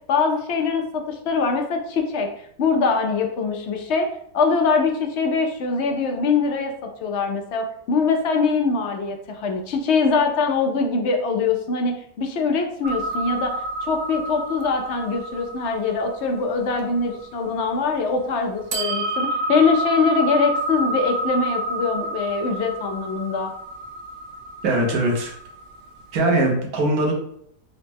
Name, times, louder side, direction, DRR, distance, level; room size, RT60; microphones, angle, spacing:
voice 1, 0.1-4.1 4.3-6.7 7.0-23.5, left 4 dB, 65° left, 3 dB, 0.7 m, -23 dB
sound 1, 12.8-18.0 18.7-26.2, right 1 dB, 70° right, 0.6 m, -29 dB
voice 2, 24.6-25.3 26.1-27.1, right 1 dB, 85° right, 0 dB, 1.3 m, -21 dB
3.9 x 2.1 x 3.4 m, 0.70 s
omnidirectional pair, 1.6 m